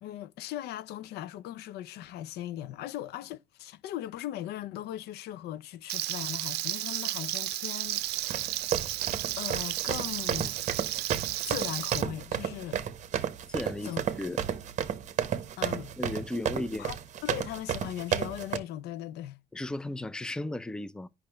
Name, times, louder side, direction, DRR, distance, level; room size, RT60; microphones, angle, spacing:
voice 1, 0.0-8.0 9.4-10.6 11.4-12.8 13.8-14.0 15.6-15.9 16.8-17.0 17.2-19.4, left 12 dB, 75° left, 0.4 m, -38 dB
Frying (food), 5.9-12.0, right 16 dB, 80° right, 0.5 m, -33 dB
sound 1, 8.0-18.6, right 9 dB, 45° right, 0.7 m, -32 dB
voice 2, 13.5-14.4 16.0-16.9 19.5-21.1, left 1 dB, 5° left, 0.4 m, -35 dB
8.5 x 5.4 x 2.2 m
cardioid pair, 110°, 17 cm